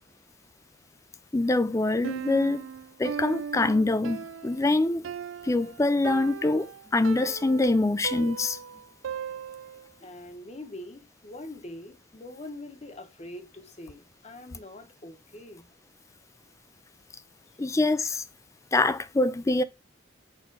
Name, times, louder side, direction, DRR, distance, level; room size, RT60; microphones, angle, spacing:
voice 1, 1.3-2.6 3.0-5.0 5.4-8.6 17.6-18.2 18.7-19.6, left 2 dB, 15° left, 0.3 m, -24 dB
Piano, 2.0-9.9, right 7 dB, 90° right, 0.4 m, -38 dB
voice 2, 10.0-15.7, left 1 dB, 35° left, 0.9 m, -43 dB
6.5 x 3.1 x 5.2 m
head